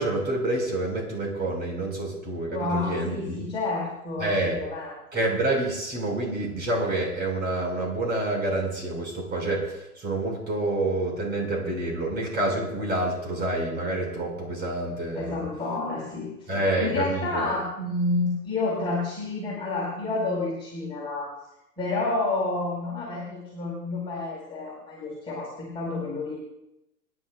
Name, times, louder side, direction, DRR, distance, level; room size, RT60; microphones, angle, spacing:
voice 1, 0.0-3.5 4.2-4.6 5.1-15.4 16.5-17.5, right 2 dB, 20° right, 0 dB, 5.4 m, -28 dB
voice 2, 2.5-4.9 15.1-16.3 16.6-21.3 21.8-26.3, left 2 dB, 10° left, -6 dB, 4.6 m, -29 dB
29.0 x 11.0 x 2.4 m, 0.88 s
hypercardioid pair, 125°, 48 cm